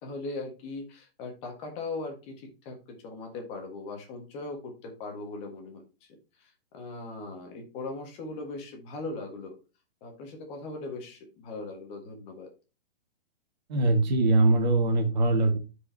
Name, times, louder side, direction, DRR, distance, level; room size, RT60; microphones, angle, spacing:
voice 1, 0.0-5.8 6.4-9.5 10.0-12.5, left 3 dB, 20° left, 3 dB, 1.6 m, -39 dB
voice 2, 13.7-15.6, right 2 dB, 45° right, 5 dB, 1.8 m, -22 dB
12.5 x 4.9 x 2.8 m, 0.31 s
hypercardioid pair, 160°, 30 cm